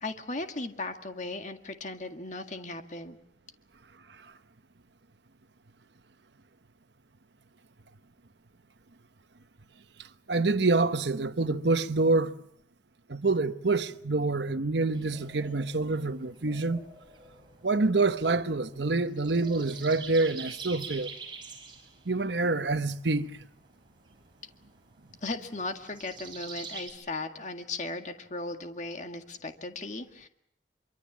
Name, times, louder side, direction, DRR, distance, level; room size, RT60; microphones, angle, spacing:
voice 1, 0.0-3.2 25.2-30.3, left 2 dB, 40° left, 1.9 m, -37 dB
voice 2, 10.0-12.4 13.1-16.8 17.6-21.1 22.0-23.4, right 3 dB, 70° right, 1.0 m, -27 dB
sound 1, 14.9-26.9, right 5 dB, 25° right, 6.2 m, -47 dB
25.5 x 24.0 x 7.3 m
head